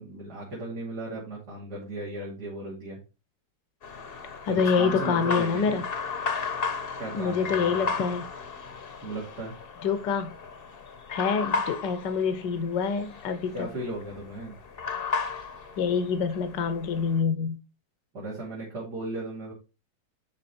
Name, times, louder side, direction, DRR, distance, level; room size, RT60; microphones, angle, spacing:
voice 1, 0.0-3.0 4.5-5.8 7.0-7.9 9.0-9.5 13.5-14.6 18.1-19.5, right 2 dB, 65° right, -5 dB, 3.4 m, -36 dB
sound 1, 3.8-17.2, left 5 dB, 40° left, 1.0 m, -34 dB
voice 2, 4.4-5.8 7.1-8.3 9.8-10.3 11.1-13.7 15.8-17.6, left 5 dB, 80° left, 9 dB, 1.6 m, -26 dB
11.5 x 4.1 x 4.3 m, 0.30 s
omnidirectional pair, 1.9 m